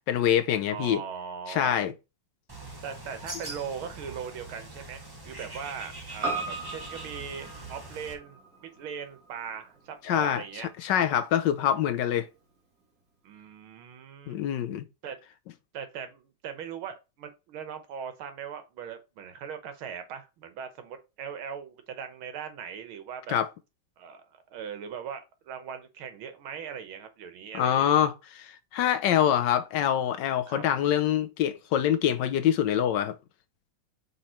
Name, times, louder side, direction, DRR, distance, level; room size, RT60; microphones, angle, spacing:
voice 1, 0.1-1.0 1.5-1.9 10.1-10.4 10.8-12.3 14.3-14.9 23.3-23.5 27.5-33.1, left 10 dB, 70° left, 1.2 m, -25 dB
voice 2, 0.7-1.8 2.8-10.7 13.2-14.4 15.0-15.2 15.7-23.4 24.0-27.9 30.5-30.6, right 7 dB, 85° right, 1.9 m, -40 dB
Bird, 2.5-8.1, right 2 dB, 15° right, 0.9 m, -43 dB
Piano, 6.2-10.7 11.0-11.1, right 3 dB, 45° right, 2.3 m, -38 dB
5.3 x 4.2 x 4.3 m
omnidirectional pair, 2.2 m